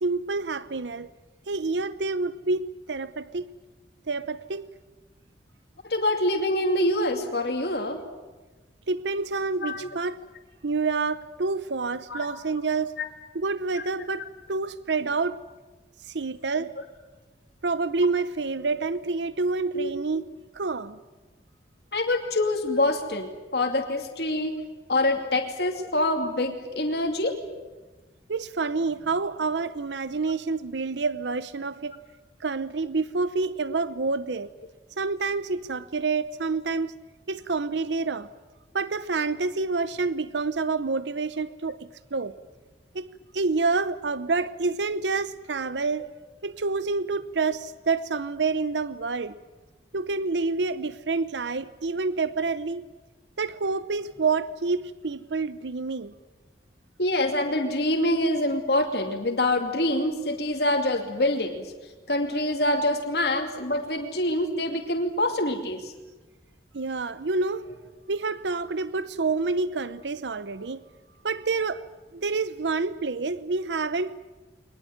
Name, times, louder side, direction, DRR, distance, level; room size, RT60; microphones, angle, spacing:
voice 1, 0.0-1.1 1.5-3.5 4.1-4.7 8.9-10.2 10.6-13.0 13.3-15.4 16.1-16.7 17.6-20.3 20.5-21.0 28.3-32.0 32.4-34.5 35.0-36.9 37.3-38.3 38.7-42.3 42.9-43.1 43.3-46.1 46.4-49.3 49.9-52.8 53.4-56.1 66.7-67.7 68.1-70.8 71.2-71.8 72.1-74.1, right 4 dB, 90° right, 0.8 m, -28 dB
voice 2, 5.8-8.0 9.6-9.9 12.1-12.2 19.7-19.9 21.9-24.6 24.9-27.3 57.0-61.7 62.1-65.9, left 1 dB, 65° left, 2.7 m, -25 dB
23.0 x 20.0 x 9.4 m
head